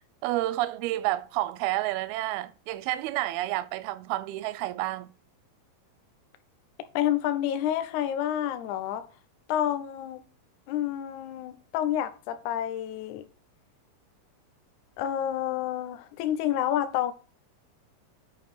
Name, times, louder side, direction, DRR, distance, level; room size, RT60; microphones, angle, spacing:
voice 1, 0.0-5.1, right 16 dB, 80° right, 2.5 m, -30 dB
voice 2, 6.9-9.1 9.5-10.2 10.7-13.3 15.0-17.1, left 11 dB, 80° left, 1.7 m, -29 dB
8.4 x 4.7 x 4.3 m
omnidirectional pair, 4.5 m